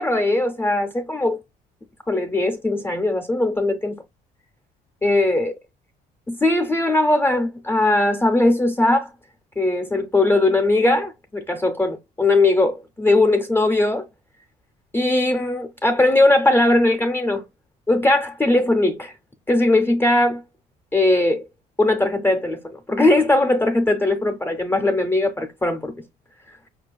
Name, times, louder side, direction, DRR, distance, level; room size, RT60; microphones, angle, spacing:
voice 1, 0.0-1.4 2.1-4.0 5.0-5.5 6.3-9.1 9.6-14.1 14.9-17.4 17.9-19.1 19.5-20.4 20.9-21.5 21.8-25.9, left 2 dB, 15° left, 0.5 m, -19 dB
4.7 x 2.3 x 2.3 m
cardioid pair, 110°, 17 cm